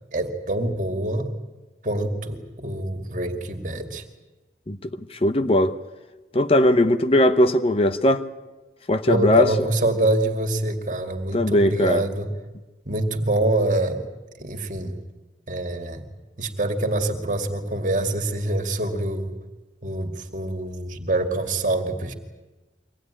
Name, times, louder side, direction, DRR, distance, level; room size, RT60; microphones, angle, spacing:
voice 1, 0.1-1.3 1.8-4.0 9.1-12.3 12.9-14.1 14.4-15.0 15.5-16.0 16.4-19.4 19.8-22.1, right 2 dB, 45° right, 2.4 m, -25 dB
voice 2, 4.7-5.7 6.3-8.2 8.9-9.5 11.3-12.0, left 1 dB, 35° left, 0.8 m, -19 dB
24.0 x 18.5 x 9.9 m
head